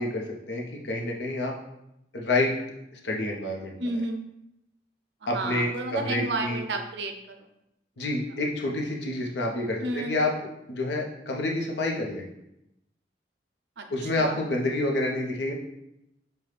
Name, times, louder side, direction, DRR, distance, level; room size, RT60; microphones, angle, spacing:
voice 1, 0.0-1.5 2.1-2.5 2.9-3.8 5.3-6.6 8.0-10.3 10.7-12.3 13.9-15.5, left 2 dB, 75° left, 0 dB, 0.7 m, -28 dB
voice 2, 3.8-4.2 5.3-7.4 9.8-10.2 13.8-14.4, right 2 dB, 75° right, 5 dB, 0.5 m, -32 dB
5.5 x 2.3 x 3.3 m, 0.83 s
head